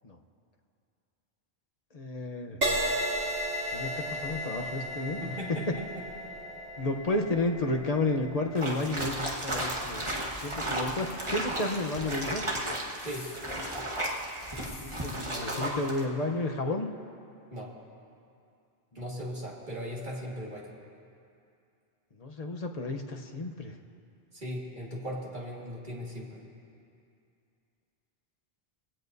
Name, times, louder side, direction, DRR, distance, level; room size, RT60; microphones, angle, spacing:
voice 1, 1.9-2.6 3.7-5.2 5.7-5.8 6.8-10.1 10.4-12.4 14.8-16.9 18.9-19.0 22.2-23.7, left 2 dB, 40° left, 3 dB, 0.9 m, -31 dB
Crash cymbal, 2.6-10.3 10.9-11.2, equal, 70° right, 1.9 m, -35 dB
voice 2, 5.2-6.3 13.0-13.3 17.5-17.7 19.0-20.7 24.3-26.4, equal, 45° right, -3 dB, 2.2 m, -38 dB
sound 1, 8.5-16.0, right 1 dB, 30° right, 1.4 m, -34 dB
sound 2, 13.0-13.4 14.6-15.2, left 4 dB, 85° left, 1.5 m, -48 dB
21.0 x 16.5 x 2.7 m, 2.5 s
omnidirectional pair, 1.1 m